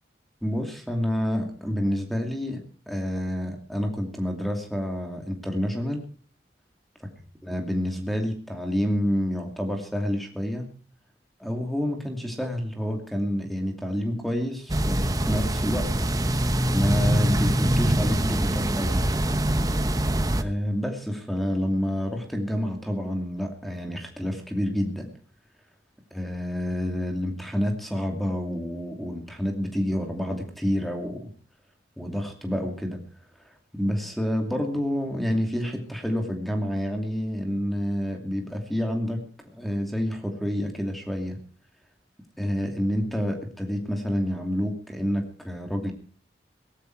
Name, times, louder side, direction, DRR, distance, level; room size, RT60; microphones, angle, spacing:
voice 1, 0.4-6.1 7.4-10.7 11.4-15.9 16.7-19.0 20.4-25.1 26.1-31.3 32.0-33.0 33.7-41.4 42.4-45.9, equal, ahead, 3 dB, 2.5 m, -28 dB
sound 1, 14.7-20.4, right 1 dB, 20° right, 0.9 m, -24 dB
18.0 x 14.5 x 4.6 m, 0.41 s
head